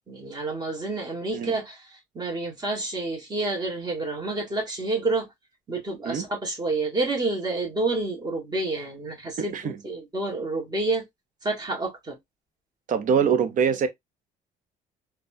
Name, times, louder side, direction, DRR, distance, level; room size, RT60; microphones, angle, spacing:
voice 1, 0.1-5.3 5.7-11.0 11.4-12.2, right 2 dB, 25° right, 1.5 m, -29 dB
voice 2, 9.4-9.8 12.9-13.9, right 7 dB, 50° right, 0.7 m, -23 dB
4.0 x 2.3 x 2.6 m
cardioid pair, 110°, 17 cm